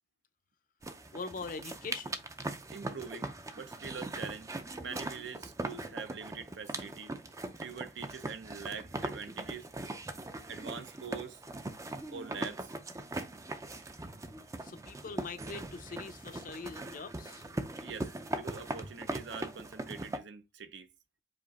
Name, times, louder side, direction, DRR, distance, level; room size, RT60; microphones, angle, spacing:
sound 1, 0.8-20.2, right 2 dB, 15° right, 0.4 m, -40 dB
voice 1, 1.1-2.2 14.6-17.4, left 4 dB, 45° left, 0.5 m, -43 dB
voice 2, 2.7-7.1 7.6-9.7 10.5-11.4 12.1-12.8 17.8-20.9, right 5 dB, 75° right, 0.6 m, -44 dB
5.1 x 2.4 x 4.0 m
head